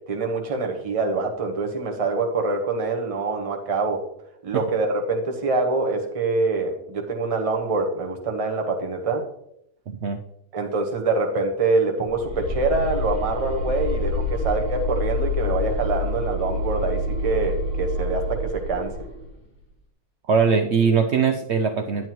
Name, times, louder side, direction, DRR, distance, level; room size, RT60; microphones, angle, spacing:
voice 1, 0.1-4.0 4.4-9.2 10.5-18.9, right 3 dB, 25° right, 2 dB, 1.0 m, -25 dB
voice 2, 9.9-10.2 20.3-22.1, right 5 dB, 65° right, 6 dB, 0.7 m, -21 dB
sound 1, 12.1-19.3, left 1 dB, 80° left, 2.9 m, -27 dB
9.3 x 9.0 x 3.0 m, 0.75 s
omnidirectional pair, 1.7 m